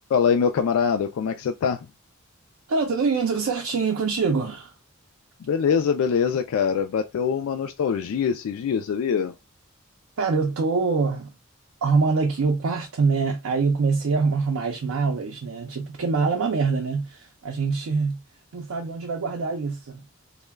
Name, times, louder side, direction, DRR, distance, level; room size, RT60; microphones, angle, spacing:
voice 1, 0.1-1.9 5.5-9.3, left 6 dB, 90° left, 0.3 m, -23 dB
voice 2, 2.7-4.7 10.2-11.3 11.8-18.2 18.5-20.0, right 4 dB, 85° right, 0.4 m, -24 dB
2.2 x 2.1 x 3.3 m
head